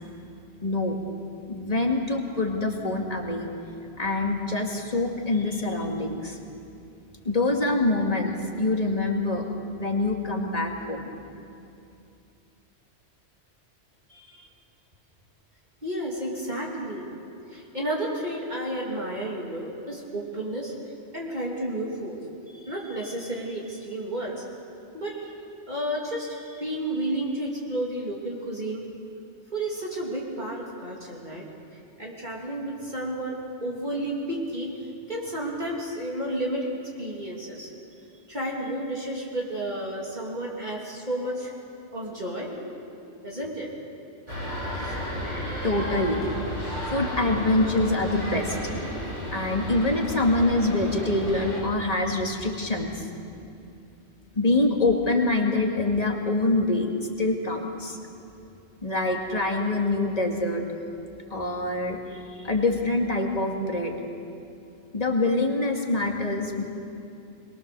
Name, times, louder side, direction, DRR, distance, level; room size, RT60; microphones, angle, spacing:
voice 1, 0.6-1.0 1.5-3.5 4.0-6.4 7.2-11.1 45.6-46.2 46.9-48.7 49.3-53.2 54.4-56.9 57.2-58.0 58.8-60.6 61.3-64.0 64.9-66.6, left 2 dB, 35° left, 1 dB, 2.1 m, -25 dB
voice 2, 14.1-14.5 15.8-17.1 17.5-20.7 21.1-22.2 22.5-24.4 24.9-25.4 25.7-28.8 29.5-31.4 31.7-34.8 35.1-36.7 37.0-37.7 38.3-41.5 41.9-43.7 44.8-44.9, right 1 dB, 40° right, -4 dB, 2.9 m, -32 dB
sound 1, 44.3-51.6, equal, 85° right, 7.2 m, -33 dB
22.5 x 22.0 x 6.8 m, 2.6 s
omnidirectional pair, 1.2 m